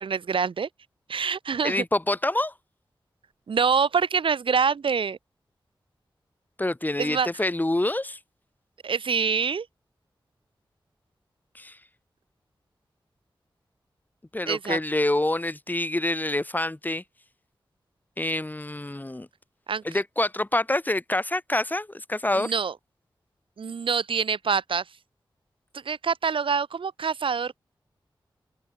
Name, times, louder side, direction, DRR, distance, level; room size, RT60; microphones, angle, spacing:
voice 1, 0.0-0.7 1.1-1.8 3.5-5.2 7.0-7.3 8.8-9.7 14.5-14.8 19.7-19.8 22.3-22.7 23.6-24.8 25.9-27.6, right 6 dB, 85° right, 2.0 m, -25 dB
voice 2, 1.6-2.5 6.6-8.2 11.5-11.8 14.3-17.0 18.2-19.3 19.8-22.5, left 1 dB, 20° left, 3.8 m, -26 dB
open air
wide cardioid pair, 75°, 9 cm